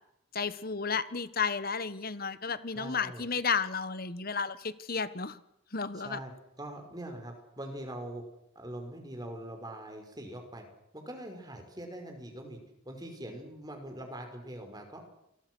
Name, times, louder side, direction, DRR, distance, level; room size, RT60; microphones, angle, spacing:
voice 1, 0.3-5.4 5.7-6.2, left 5 dB, 50° left, 14 dB, 1.4 m, -32 dB
voice 2, 2.8-3.2 6.0-6.3 6.6-8.2 8.6-10.7 10.9-12.6 12.9-15.0, right 1 dB, 20° right, 4 dB, 5.4 m, -42 dB
28.5 x 22.0 x 6.3 m, 0.80 s
head